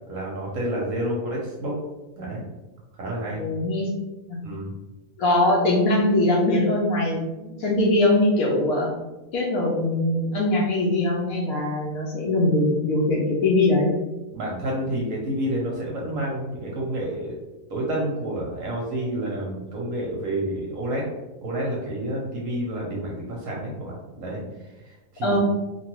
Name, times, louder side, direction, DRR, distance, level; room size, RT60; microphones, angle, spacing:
voice 1, 0.1-1.8 2.2-2.4 2.9-3.4 4.4-4.7 14.3-17.4 17.7-21.1 21.4-25.4, right 1 dB, 65° right, -3 dB, 0.9 m, -29 dB
voice 2, 3.3-3.9 4.3-4.4 5.2-8.9 9.3-13.9 25.2-25.4, left 2 dB, 70° left, -2 dB, 0.9 m, -22 dB
2.9 x 2.2 x 3.0 m, 1.1 s
omnidirectional pair, 1.8 m